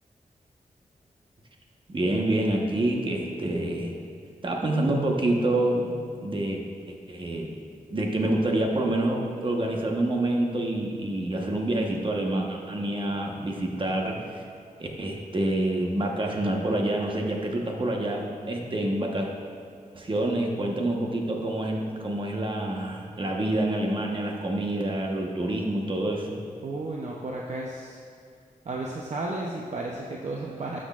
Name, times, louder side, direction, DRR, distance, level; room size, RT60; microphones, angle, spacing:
voice 1, 1.9-3.9 4.4-6.6 6.9-7.5 7.9-14.2 14.8-19.3 19.9-26.4, right 1 dB, 35° right, 0 dB, 1.1 m, -27 dB
voice 2, 26.6-28.0 28.7-30.8, right 2 dB, 50° right, -2 dB, 0.7 m, -33 dB
12.0 x 6.2 x 2.4 m, 2.4 s
wide cardioid pair, 90°, 15 cm